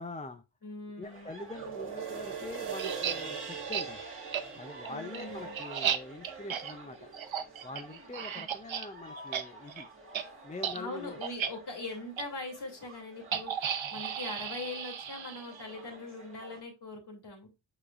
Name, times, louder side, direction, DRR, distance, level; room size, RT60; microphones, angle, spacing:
voice 1, 0.0-0.4 1.0-4.0 4.5-7.1 7.6-9.9 10.4-11.2, left 2 dB, 15° left, 8 dB, 0.4 m, -43 dB
voice 2, 0.6-1.3 4.9-5.6 10.8-17.5, left 2 dB, 55° left, 2 dB, 2.7 m, -42 dB
sound 1, 1.0-16.6, right 2 dB, 25° right, 1.9 m, -50 dB
sound 2, 1.5-8.0 8.5-8.6, right 6 dB, 55° right, 1.5 m, -42 dB
sound 3, 2.8-3.2 3.7-3.9 4.3-4.4 4.8-8.9 9.2-9.4 9.7-9.8 10.1-10.2 10.6-10.8 11.2-11.5 12.2-12.3 13.3-15.7, right 8 dB, 70° right, 0.8 m, -34 dB
8.2 x 5.0 x 2.4 m, 0.25 s
wide cardioid pair, 170°, 49 cm